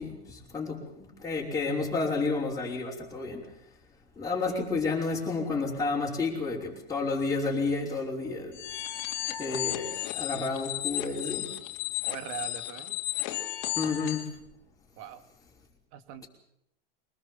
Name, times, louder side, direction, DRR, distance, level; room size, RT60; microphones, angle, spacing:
voice 1, 0.0-3.5 4.2-8.6 9.4-11.5 13.8-14.4, left 4 dB, 10° left, 5.3 m, -31 dB
sound 1, 8.5-14.3, left 16 dB, 50° left, 2.8 m, -34 dB
voice 2, 12.0-13.0 15.0-15.2 15.9-16.3, right 11 dB, 50° right, 2.6 m, -41 dB
23.5 x 20.5 x 7.6 m
supercardioid pair, 130°, 31 cm